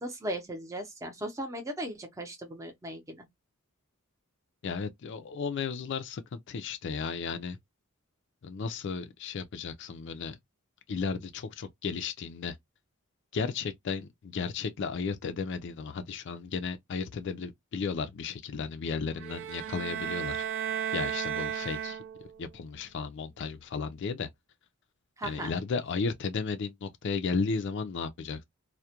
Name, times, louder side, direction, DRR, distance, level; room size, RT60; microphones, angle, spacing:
voice 1, 0.0-3.3 25.2-25.5, right 1 dB, 15° right, 0.6 m, -37 dB
voice 2, 4.6-7.6 8.4-10.4 10.9-12.6 13.3-20.4 20.9-22.0 22.4-24.3 25.2-28.4, left 5 dB, 55° left, 0.4 m, -34 dB
sound 1, 19.2-22.4, right 8 dB, 60° right, 0.3 m, -34 dB
2.3 x 2.1 x 2.8 m
head